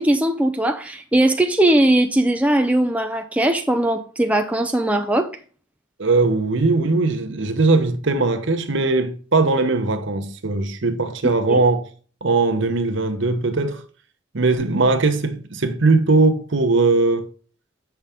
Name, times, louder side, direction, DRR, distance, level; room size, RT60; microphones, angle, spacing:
voice 1, 0.0-5.3 11.2-11.6, right 1 dB, 5° right, 0.5 m, -19 dB
voice 2, 6.0-11.9 12.2-13.8 14.3-17.3, right 3 dB, 55° right, 0.9 m, -19 dB
7.9 x 5.8 x 3.5 m
head